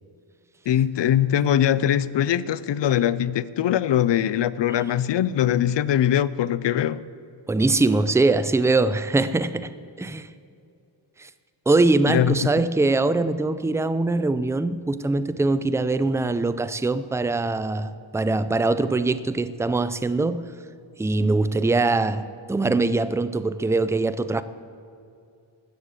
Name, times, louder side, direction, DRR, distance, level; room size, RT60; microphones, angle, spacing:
voice 1, 0.7-7.0 12.1-12.4, left 10 dB, 65° left, 0.6 m, -22 dB
voice 2, 7.5-9.7 10.0-10.3 11.2-11.3 11.7-20.5 21.0-24.4, right 3 dB, 5° right, 0.4 m, -22 dB
15.0 x 6.5 x 8.3 m
cardioid pair, 80°, 46 cm